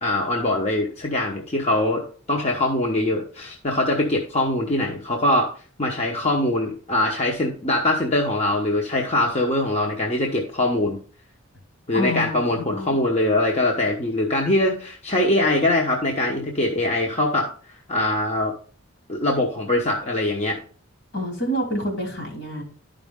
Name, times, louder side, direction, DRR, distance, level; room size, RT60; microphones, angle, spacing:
voice 1, 0.0-2.0 2.3-5.5 5.8-11.0 11.9-17.5 17.9-18.5 19.1-20.6, left 1 dB, 30° left, 0 dB, 1.0 m, -22 dB
voice 2, 11.9-13.0 21.1-22.6, equal, 65° left, 1 dB, 3.1 m, -28 dB
11.5 x 5.2 x 3.6 m, 0.41 s
head